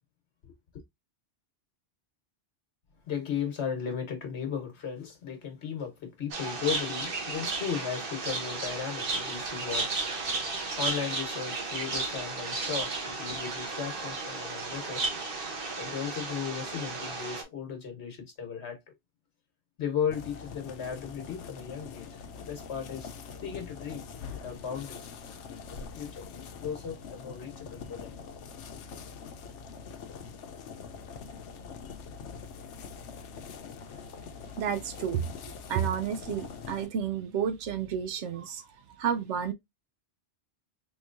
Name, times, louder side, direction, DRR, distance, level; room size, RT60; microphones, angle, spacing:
voice 1, 3.1-10.1 10.4-15.0 15.8-18.8 19.8-22.1 22.3-23.1 23.4-24.1 24.4-25.1 25.7-28.3, left 7 dB, 70° left, 1.4 m, -36 dB
sound 1, 6.3-17.4, right 3 dB, 55° right, 1.1 m, -34 dB
sound 2, 20.1-36.9, left 5 dB, 90° left, 1.0 m, -44 dB
voice 2, 34.6-38.7 39.0-39.5, right 8 dB, 85° right, 1.0 m, -31 dB
3.7 x 3.0 x 2.5 m
omnidirectional pair, 1.2 m